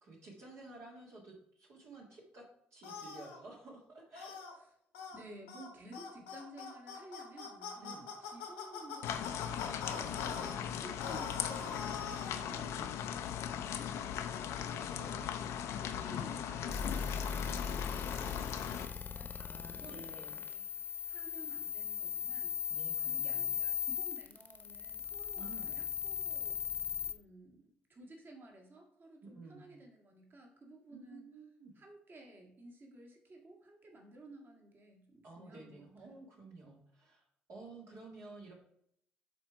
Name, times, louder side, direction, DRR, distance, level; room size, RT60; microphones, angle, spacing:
voice 1, 0.0-2.4 2.7-4.4 7.8-8.1 9.9-10.6 12.4-12.8 14.7-15.5 19.4-20.4 22.7-23.5 25.4-25.8 29.2-29.7 30.9-31.7 35.2-38.5, right 3 dB, 60° right, -2 dB, 1.6 m, -53 dB
sound 1, 2.8-3.4 4.2-4.5 4.9-5.2 5.5-5.7 5.9-10.5 11.0-12.5, left 6 dB, 85° left, 1.2 m, -43 dB
voice 2, 5.1-26.8 27.1-31.3 31.8-36.2, right 1 dB, 40° right, 1 dB, 1.8 m, -55 dB
sound 2, 9.0-18.9, left 9 dB, 65° left, 0.6 m, -39 dB
sound 3, 16.7-27.1, left 7 dB, 40° left, 1.0 m, -38 dB
7.8 x 3.5 x 4.5 m, 0.70 s
hypercardioid pair, 50°, 5 cm